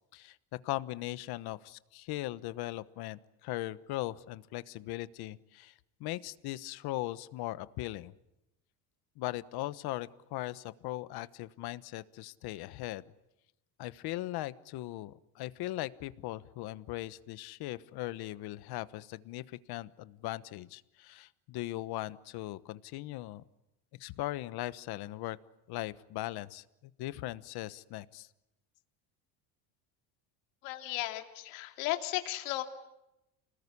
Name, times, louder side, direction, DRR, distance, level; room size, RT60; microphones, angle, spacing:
voice 1, 0.6-5.7 6.0-8.1 9.2-13.0 13.8-23.4 24.0-25.4 25.7-28.3, left 17 dB, 60° left, 15 dB, 1.2 m, -39 dB
voice 2, 30.6-32.6, left 17 dB, 90° left, 5 dB, 2.7 m, -35 dB
30.0 x 20.0 x 9.8 m, 0.92 s
cardioid pair, 155°, 43 cm